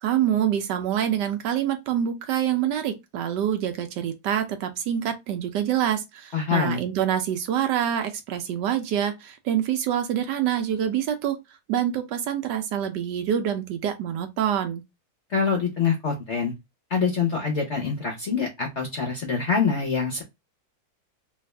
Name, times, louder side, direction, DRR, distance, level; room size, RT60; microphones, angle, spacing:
voice 1, 0.0-11.4 11.7-14.8, right 10 dB, 75° right, 1.1 m, -26 dB
voice 2, 6.3-6.8 15.3-16.5 16.9-20.2, left 5 dB, 55° left, 0.8 m, -25 dB
3.4 x 2.4 x 3.2 m
omnidirectional pair, 2.1 m